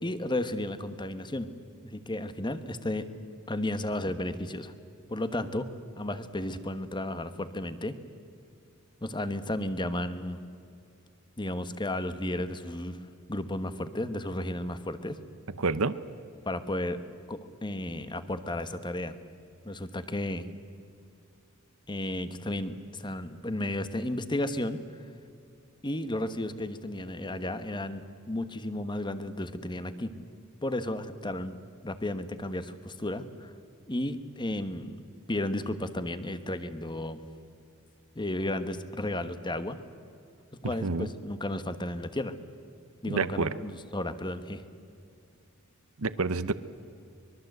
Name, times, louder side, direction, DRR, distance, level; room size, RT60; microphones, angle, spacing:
voice 1, 0.0-1.5 1.8-3.1 3.5-4.7 5.1-5.7 6.0-8.0 9.0-10.4 11.4-13.0 13.3-15.2 16.4-17.0 17.3-19.2 19.6-20.5 21.9-24.8 25.8-30.1 30.6-31.6 31.8-33.5 33.9-35.0 35.3-37.2 38.1-39.8 40.6-42.3 43.0-44.6, left 1 dB, 20° left, 11 dB, 1.2 m, -33 dB
voice 2, 15.6-16.0 40.8-41.1 43.1-43.5 46.0-46.5, right 3 dB, 80° right, 14 dB, 0.9 m, -28 dB
24.5 x 22.0 x 8.0 m, 2.5 s
head